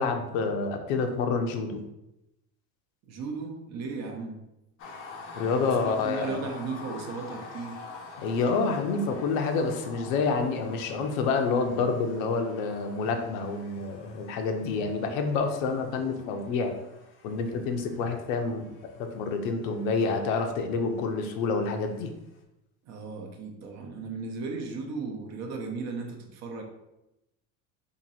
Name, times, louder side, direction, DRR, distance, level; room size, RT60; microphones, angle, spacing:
voice 1, 0.0-1.8 5.3-6.4 8.2-16.7 17.2-18.7 19.0-22.1, left 4 dB, 80° left, 5 dB, 0.7 m, -28 dB
voice 2, 3.1-4.4 5.6-7.8 22.9-26.6, right 4 dB, 45° right, 3 dB, 0.7 m, -36 dB
sound 1, 4.8-22.0, left 4 dB, 35° left, 0.5 m, -47 dB
2.9 x 2.7 x 4.1 m, 0.90 s
cardioid pair, 150°, 39 cm